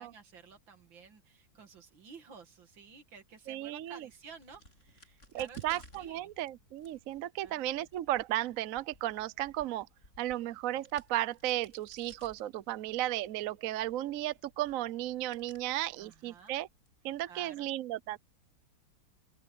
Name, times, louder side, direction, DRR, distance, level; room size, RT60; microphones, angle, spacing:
voice 1, 0.0-6.3 7.4-7.9 15.9-16.6 17.3-17.7, right 5 dB, 85° right, 2.8 m, -53 dB
voice 2, 3.5-3.9 5.3-9.9 10.2-16.7 17.0-18.2, right 14 dB, 65° right, 0.9 m, -34 dB
Crack, 4.0-17.3, left 1 dB, 40° left, 8.4 m, -61 dB
open air
omnidirectional pair, 2.0 m